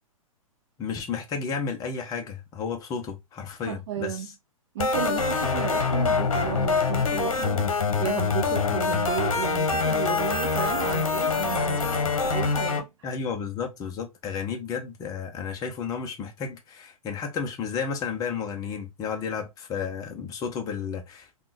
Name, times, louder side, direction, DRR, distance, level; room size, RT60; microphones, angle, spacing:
voice 1, 0.8-4.2 13.0-21.3, left 6 dB, 20° left, 0.6 m, -32 dB
voice 2, 3.6-4.3 4.7-13.1, right 12 dB, 50° right, 0.4 m, -33 dB
sound 1, 4.8-12.8, left 4 dB, 70° left, 0.9 m, -25 dB
3.6 x 2.3 x 2.4 m
figure-of-eight pair, 115°, 18 cm